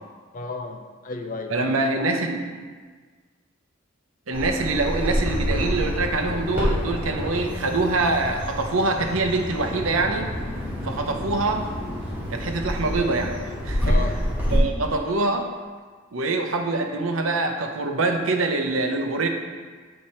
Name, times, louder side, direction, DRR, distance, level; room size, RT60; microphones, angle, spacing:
voice 1, 0.3-1.7 13.8-14.2, left 3 dB, 40° left, 5 dB, 0.5 m, -33 dB
voice 2, 1.5-2.5 4.3-10.3 10.8-11.7 12.3-13.3 13.6-14.2 14.5-15.5 16.1-19.3, right 2 dB, 80° right, 4 dB, 0.8 m, -24 dB
Bird vocalization bird call bird song, 4.3-14.6, equal, 10° right, 2.1 m, -28 dB
8.3 x 4.3 x 4.3 m, 1.5 s
head